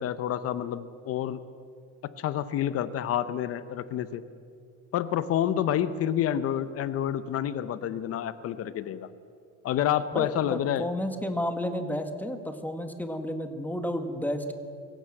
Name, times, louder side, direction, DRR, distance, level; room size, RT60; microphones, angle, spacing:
voice 1, 0.0-1.4 2.2-4.2 4.9-9.1 9.6-10.9, left 10 dB, 50° left, 13 dB, 0.9 m, -28 dB
voice 2, 10.1-14.5, equal, 5° left, 6 dB, 1.6 m, -31 dB
25.0 x 16.0 x 7.8 m, 2.3 s
cardioid pair, 145°, 30 cm